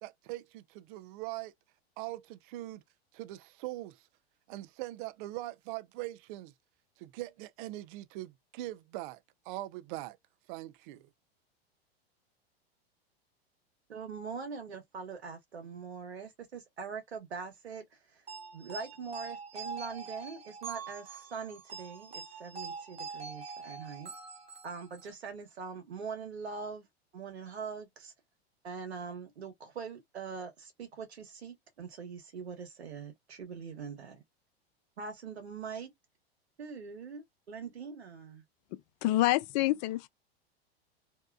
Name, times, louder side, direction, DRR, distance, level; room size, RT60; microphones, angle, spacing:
voice 1, 0.0-1.5 2.0-2.8 3.1-4.0 4.5-6.5 7.0-9.2 9.5-10.2 10.5-11.1, right 17 dB, 55° right, 0.5 m, -41 dB
voice 2, 13.9-17.8 18.1-18.2 18.5-24.1 24.6-26.9 27.1-28.1 28.6-34.2 35.0-35.9 36.6-38.4, right 5 dB, 90° right, 1.1 m, -42 dB
sound 1, 18.3-25.1, right 5 dB, 20° right, 0.8 m, -44 dB
voice 3, 39.0-40.1, left 17 dB, 45° left, 0.4 m, -27 dB
2.7 x 2.2 x 2.2 m
hypercardioid pair, 100°, 31 cm